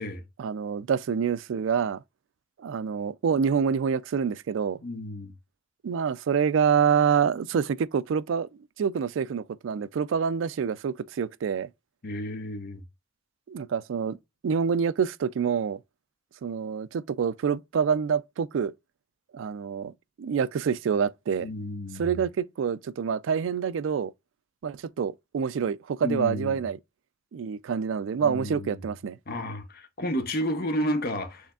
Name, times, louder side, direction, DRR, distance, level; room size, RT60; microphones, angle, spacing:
voice 1, 0.4-2.0 2.6-4.8 5.8-8.5 8.8-11.7 13.5-14.2 14.4-15.8 16.4-18.7 19.3-19.9 20.2-21.5 22.0-24.1 24.6-26.8 27.3-29.2, right 6 dB, 85° right, 0.4 m, -27 dB
voice 2, 4.8-5.3 12.0-12.8 21.4-22.1 26.0-26.6 28.2-28.8 29.3-31.5, left 1 dB, 55° left, 0.9 m, -31 dB
6.3 x 3.4 x 2.3 m
head